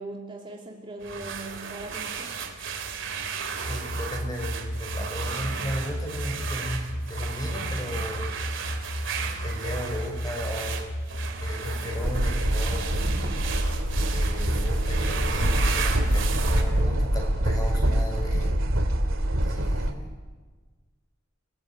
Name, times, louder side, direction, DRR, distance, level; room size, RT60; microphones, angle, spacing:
voice 1, 0.0-2.4 12.8-13.6, right 2 dB, 25° right, 0 dB, 2.8 m, -40 dB
sound 1, 1.0-16.6, right 6 dB, 65° right, 3.2 m, -35 dB
sound 2, 3.5-16.6, equal, 70° left, 2.6 m, -33 dB
voice 2, 3.6-8.3 9.4-10.8 11.4-13.0 14.1-18.6 19.4-20.1, equal, 20° left, 2 dB, 6.0 m, -36 dB
sound 3, 12.0-19.9, right 1 dB, 90° right, 2.4 m, -25 dB
28.5 x 19.5 x 8.9 m, 1.4 s
head